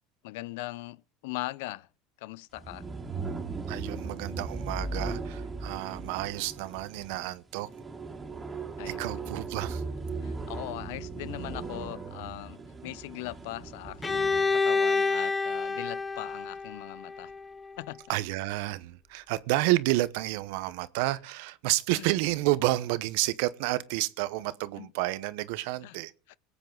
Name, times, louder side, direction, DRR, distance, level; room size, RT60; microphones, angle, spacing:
voice 1, 0.2-1.9 2.2-2.9 8.8-9.2 10.2-17.3 17.8-18.0 21.9-22.1 24.8-24.9 25.8-26.0 26.3-26.4, left 18 dB, 75° left, 0.5 m, -40 dB
sound 1, 2.5-14.5, right 3 dB, 25° right, 2.9 m, -38 dB
voice 2, 3.7-7.7 8.9-9.8 18.1-26.1, right 18 dB, 75° right, 0.9 m, -30 dB
Bowed string instrument, 14.0-17.8, left 4 dB, 20° left, 0.6 m, -28 dB
20.5 x 8.5 x 3.9 m
supercardioid pair, 105°, 0 cm